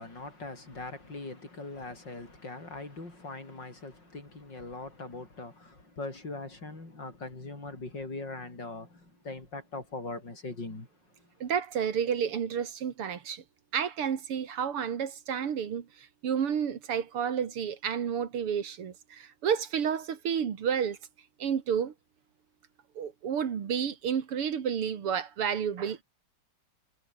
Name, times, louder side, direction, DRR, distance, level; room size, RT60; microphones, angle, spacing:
voice 1, 0.0-10.9, left 2 dB, 50° left, 6.5 m, -41 dB
voice 2, 11.4-13.4 13.7-21.0 21.4-21.9 23.0-26.0, right 8 dB, 80° right, 2.8 m, -31 dB
omnidirectional pair, 2.4 m